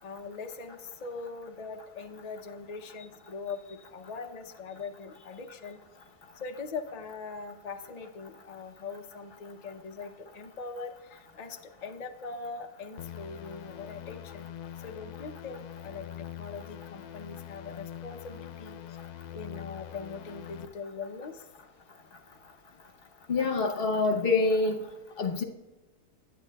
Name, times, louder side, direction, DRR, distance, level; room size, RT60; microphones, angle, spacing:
voice 1, 0.0-5.8 6.4-14.5 14.8-18.8 19.3-21.5, left 4 dB, 90° left, 4 dB, 0.3 m, -41 dB
sound 1, 13.0-20.7, left 11 dB, 70° left, 1.0 m, -43 dB
voice 2, 23.3-24.9 25.2-25.4, left 3 dB, 45° left, 4 dB, 0.8 m, -26 dB
21.0 x 9.3 x 2.3 m, 1.2 s
omnidirectional pair, 1.8 m